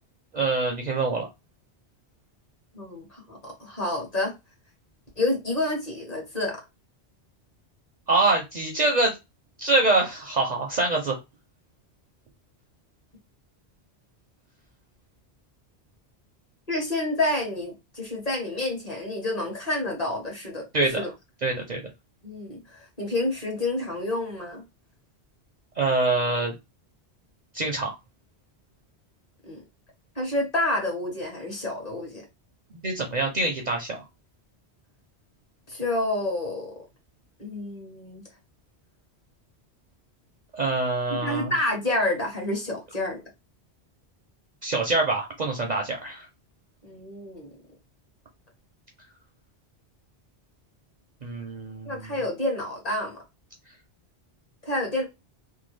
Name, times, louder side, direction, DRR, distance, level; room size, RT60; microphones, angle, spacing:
voice 1, 0.3-1.3 8.1-9.1 9.6-11.2 20.7-21.0 21.4-21.8 25.8-26.5 27.5-27.9 32.8-34.0 40.6-41.5 44.6-46.3 51.2-52.2, right 2 dB, 50° right, 0.5 m, -25 dB
voice 2, 2.7-4.3 5.2-6.6 16.7-20.6 20.9-21.1 22.2-24.6 29.5-29.6 30.2-32.2 35.7-36.7 37.4-38.2 41.1-43.2 46.8-47.5 51.8-53.2 54.6-55.0, left 1 dB, 40° left, 1.1 m, -29 dB
2.8 x 2.2 x 3.1 m
omnidirectional pair, 1.1 m